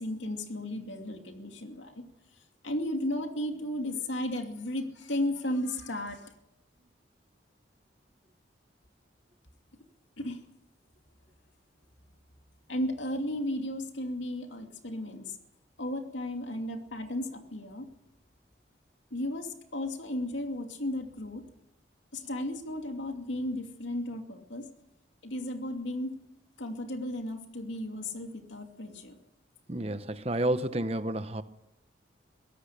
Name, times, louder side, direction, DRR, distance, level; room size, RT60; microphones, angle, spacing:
voice 1, 0.0-2.0 2.6-6.3 10.2-10.4 12.7-15.3 15.8-17.9 19.1-21.4 22.1-24.6 25.2-26.1 26.6-29.2, left 1 dB, 80° left, 4 dB, 2.6 m, -34 dB
voice 2, 29.7-31.4, right 1 dB, 30° right, 11 dB, 1.0 m, -30 dB
22.5 x 17.0 x 6.7 m, 0.86 s
head